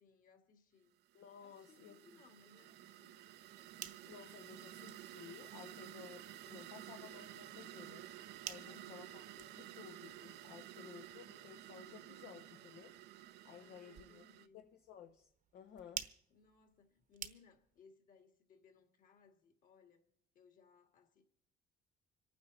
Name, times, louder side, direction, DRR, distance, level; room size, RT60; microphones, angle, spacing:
voice 1, 0.0-1.0 1.4-3.2 8.6-9.2 13.5-14.6 16.3-20.1 20.3-21.3, left 5 dB, 55° left, 2.3 m, -66 dB
voice 2, 1.1-2.2 4.0-8.1 8.4-12.9 13.4-14.2 14.5-16.1, left 8 dB, 70° left, 1.0 m, -56 dB
sound 1, 1.1-14.5, right 13 dB, 75° right, 0.7 m, -53 dB
sound 2, 3.6-17.8, right 9 dB, 50° right, 1.0 m, -54 dB
25.5 x 9.4 x 4.2 m
cardioid pair, 110°, 17 cm